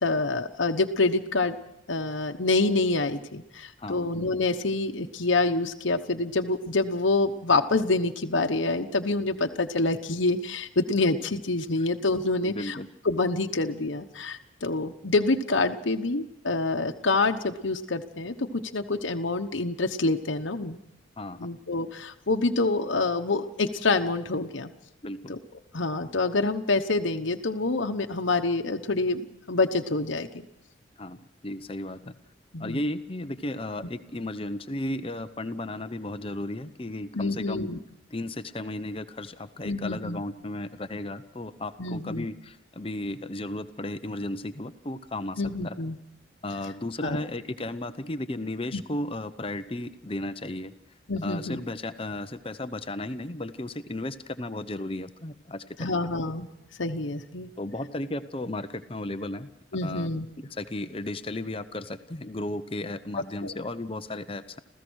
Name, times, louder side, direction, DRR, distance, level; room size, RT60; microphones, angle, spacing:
voice 1, 0.0-1.6 1.9-12.8 13.0-20.8 21.4-24.7 25.3-25.4 25.7-30.5 32.5-32.8 37.1-37.8 39.6-40.2 41.8-42.3 45.4-46.0 47.0-47.2 48.7-48.8 51.1-51.6 55.8-56.5 56.8-57.5 59.7-60.3 63.4-63.5, left 3 dB, 80° left, 5 dB, 1.1 m, -27 dB
voice 2, 3.8-4.1 12.4-12.9 21.2-21.5 25.0-25.3 31.0-31.2 31.4-32.1 32.6-37.7 38.1-45.8 46.4-50.7 51.2-56.0 57.6-59.5 59.8-60.1 60.5-64.6, left 1 dB, 30° left, 10 dB, 0.8 m, -34 dB
27.5 x 15.5 x 6.4 m, 0.90 s
head